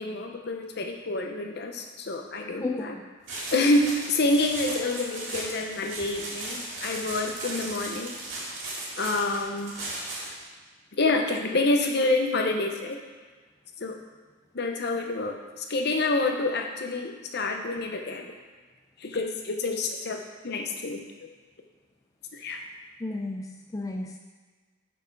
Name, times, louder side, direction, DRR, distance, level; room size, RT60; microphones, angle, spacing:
voice 1, 0.0-2.9 3.5-8.1 9.0-9.7 10.9-13.0 13.8-14.0 14.5-18.3 19.0-21.0 22.3-22.6, left 2 dB, 60° left, 3 dB, 0.8 m, -27 dB
voice 2, 2.6-3.0 23.0-24.2, left 2 dB, 20° left, 2 dB, 0.3 m, -33 dB
sound 1, 3.3-10.4, right 2 dB, 75° right, 2.0 m, -36 dB
5.9 x 5.8 x 4.7 m, 1.4 s
head